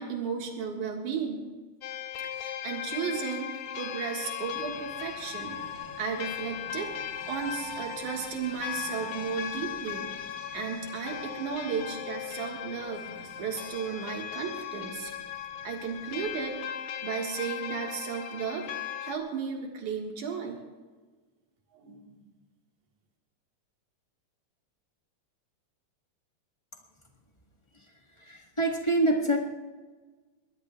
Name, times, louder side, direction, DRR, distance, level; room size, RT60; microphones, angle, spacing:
voice 1, 0.0-1.4 2.2-5.6 6.0-10.1 10.5-15.1 15.6-16.6 17.0-18.7 19.0-20.6 21.7-22.2, right 6 dB, 90° right, 0 dB, 3.2 m, -34 dB
sound 1, 1.8-19.2, left 10 dB, 70° left, 1.9 m, -38 dB
sound 2, 4.4-16.6, right 4 dB, 50° right, 5.2 m, -49 dB
voice 2, 27.7-29.4, right 1 dB, 45° left, 0 dB, 0.3 m, -27 dB
22.0 x 20.0 x 2.4 m, 1.3 s
omnidirectional pair, 3.4 m